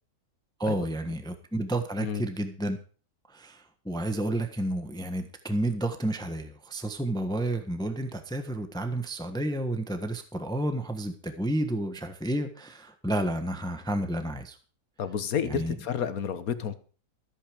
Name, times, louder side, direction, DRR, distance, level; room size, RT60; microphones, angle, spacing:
voice 1, 0.6-2.8 3.3-14.6 15.5-15.8, right 1 dB, 5° left, 7 dB, 1.1 m, -31 dB
voice 2, 15.0-16.8, left 7 dB, 65° left, 11 dB, 1.5 m, -30 dB
14.0 x 8.9 x 5.1 m, 0.40 s
omnidirectional pair, 1.6 m